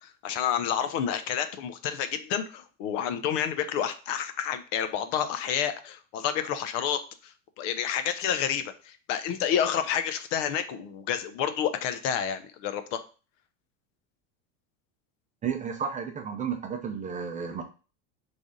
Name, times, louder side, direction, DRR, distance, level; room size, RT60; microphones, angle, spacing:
voice 1, 0.0-13.0, left 9 dB, 75° left, 10 dB, 0.7 m, -29 dB
voice 2, 15.4-17.6, right 7 dB, 20° right, 4 dB, 0.5 m, -32 dB
3.9 x 3.4 x 3.7 m, 0.35 s
cardioid pair, 150°, 37 cm